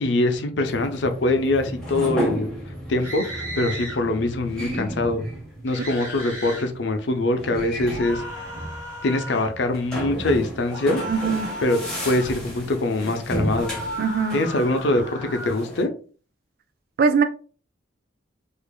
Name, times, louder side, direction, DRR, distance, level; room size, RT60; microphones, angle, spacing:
voice 1, 0.0-2.5 2.9-5.2 5.6-8.2 9.0-11.0 11.6-13.8 14.3-15.9, left 2 dB, 65° left, 0.6 m, -23 dB
sound 1, 0.6-15.8, right 1 dB, 5° left, 1.3 m, -34 dB
sound 2, 3.0-4.0 5.7-6.7 7.9-9.5 10.7-12.4 13.5-15.6, equal, 15° right, 1.6 m, -35 dB
voice 2, 11.1-11.5 14.0-14.4 17.0-17.2, right 5 dB, 50° right, 0.4 m, -21 dB
4.7 x 2.6 x 2.2 m
head